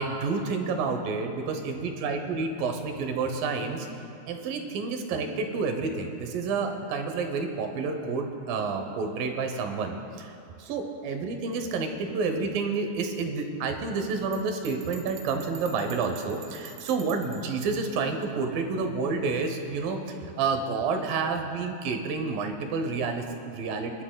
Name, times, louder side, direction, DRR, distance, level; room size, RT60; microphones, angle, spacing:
voice 1, 0.0-3.9 4.3-10.3 10.6-24.0, right 4 dB, 75° right, 5 dB, 2.4 m, -29 dB
Bell, 14.3-17.5, right 7 dB, 90° right, 2.8 m, -47 dB
29.0 x 11.5 x 2.2 m, 2.6 s
omnidirectional pair, 4.6 m